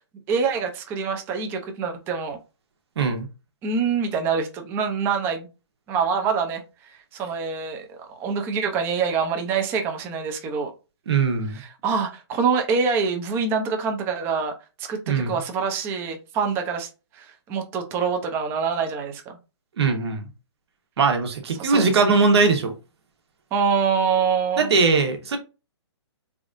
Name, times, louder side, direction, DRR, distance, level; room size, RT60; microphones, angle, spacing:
voice 1, 0.3-2.4 3.6-5.5 5.9-10.7 11.5-14.5 14.8-16.9 17.1-19.4 21.6-22.0 23.5-24.8, right 5 dB, 15° right, 0.5 m, -25 dB
voice 2, 3.0-3.3 11.1-11.6 15.1-15.4 19.8-20.3 21.0-22.7 24.6-25.4, right 4 dB, 65° right, 1.3 m, -20 dB
3.7 x 3.4 x 2.6 m
hypercardioid pair, 160°, 15 cm